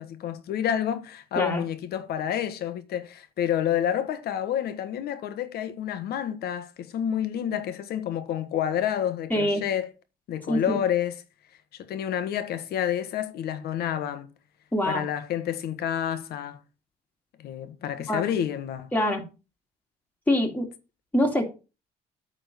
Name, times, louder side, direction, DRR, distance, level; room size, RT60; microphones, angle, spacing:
voice 1, 0.0-9.9 10.3-11.1 11.7-14.3 14.8-16.6 17.4-18.9, left 10 dB, 70° left, 1.3 m, -29 dB
voice 2, 9.3-9.6 10.5-10.8 14.7-15.1 18.1-18.3 18.9-19.2 20.3-20.7 21.1-21.5, left 1 dB, 10° left, 2.3 m, -24 dB
9.3 x 3.9 x 6.7 m
cardioid pair, 110°, 17 cm